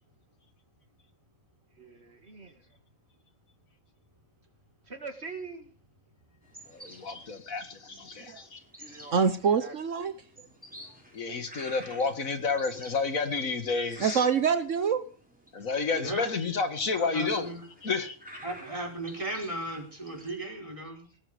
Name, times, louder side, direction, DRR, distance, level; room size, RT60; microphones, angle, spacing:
voice 1, 1.8-2.6 4.9-5.7 8.8-9.7, right 4 dB, 50° right, 2.2 m, -43 dB
sound 1, 6.4-20.3, equal, 5° right, 4.7 m, -50 dB
voice 2, 6.7-8.6 11.1-14.2 15.5-17.5 17.8-18.2, left 4 dB, 80° left, 2.3 m, -30 dB
voice 3, 9.1-10.1 14.0-15.0, right 6 dB, 70° right, 1.4 m, -25 dB
voice 4, 16.0-16.3 17.0-17.6 18.4-21.1, right 1 dB, 25° right, 5.5 m, -36 dB
18.5 x 13.5 x 5.1 m
omnidirectional pair, 1.4 m